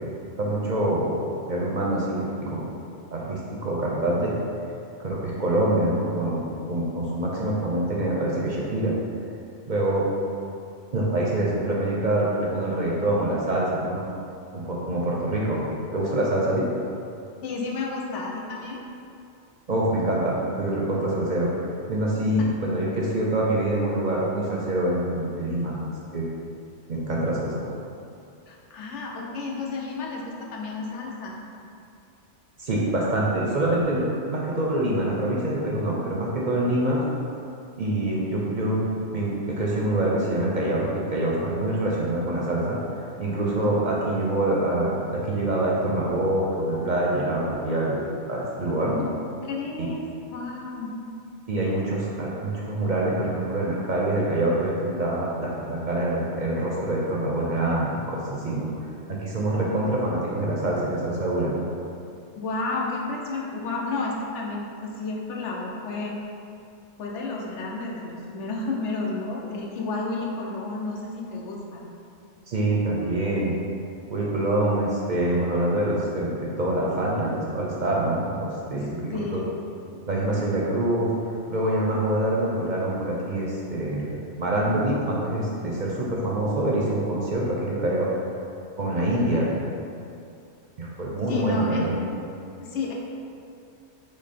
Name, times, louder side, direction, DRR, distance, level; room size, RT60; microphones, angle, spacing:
voice 1, 0.4-1.1 1.5-2.6 3.1-4.4 5.0-6.4 6.7-8.9 9.7-10.1 10.9-14.0 14.5-15.6 15.9-16.7 19.7-21.5 21.9-25.7 26.1-26.2 26.9-27.6 32.6-34.0 34.3-37.0 37.8-38.9 39.1-42.8 43.2-48.9 49.8-49.9 51.5-58.7 59.1-61.5 72.5-73.6 74.1-76.3 76.6-79.4 80.1-81.1 81.5-88.1 88.8-89.5 90.8-92.0, right 1 dB, 50° right, -4 dB, 0.6 m, -25 dB
voice 2, 17.4-18.8 28.5-31.4 43.6-43.8 48.8-49.1 49.4-50.9 62.3-66.2 67.0-71.8 78.7-78.8 79.1-79.5 91.3-91.9 92.6-92.9, left 3 dB, 80° left, -2 dB, 1.0 m, -31 dB
6.1 x 2.0 x 4.1 m, 2.6 s
omnidirectional pair, 1.2 m